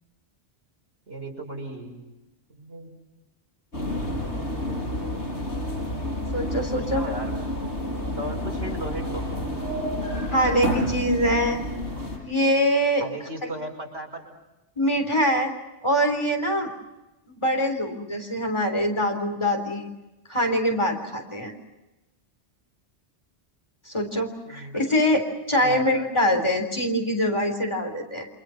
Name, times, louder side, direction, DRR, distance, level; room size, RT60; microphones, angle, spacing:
voice 1, 1.1-2.0 2.5-2.9 4.5-5.3 6.7-7.4 8.2-9.4 13.0-14.2 24.5-24.9 25.6-25.9, right 1 dB, 80° right, 1 dB, 6.2 m, -36 dB
sound 1, 3.7-12.2, left 1 dB, 80° left, 6.5 m, -29 dB
voice 2, 6.3-7.0 10.3-11.6 12.1-13.1 13.4-13.5 14.8-15.5 15.8-16.7 17.3-19.9 20.3-21.5 23.9-28.3, equal, 25° left, 3 dB, 3.8 m, -24 dB
29.0 x 26.5 x 5.8 m, 1.0 s
omnidirectional pair, 1.1 m